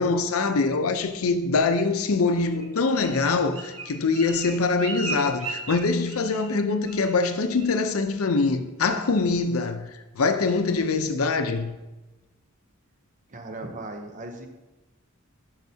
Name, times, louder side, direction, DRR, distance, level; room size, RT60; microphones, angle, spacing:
voice 1, 0.0-11.8, left 3 dB, 80° left, 0.6 m, -24 dB
Bird, 2.5-6.6 6.8-7.2 7.5-7.8 8.2-8.6 9.0-9.1, right 3 dB, 70° right, 1.1 m, -37 dB
voice 2, 13.3-14.5, right 2 dB, 35° right, 0.8 m, -37 dB
10.5 x 5.8 x 2.8 m
head